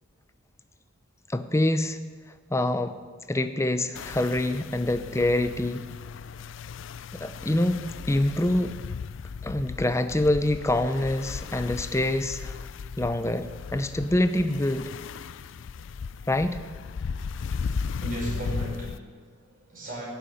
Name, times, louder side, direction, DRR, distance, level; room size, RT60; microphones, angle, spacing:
voice 1, 1.3-2.0 2.5-3.0 3.3-5.9 7.1-8.8 9.4-12.6 13.0-14.9 16.3-16.6, left 1 dB, 15° left, 10 dB, 0.6 m, -25 dB
sound 1, 4.0-19.0, left 5 dB, 60° left, 0.4 m, -36 dB
voice 2, 17.6-20.1, right 1 dB, 40° right, -3 dB, 5.1 m, -35 dB
15.5 x 7.2 x 9.2 m, 1.5 s
head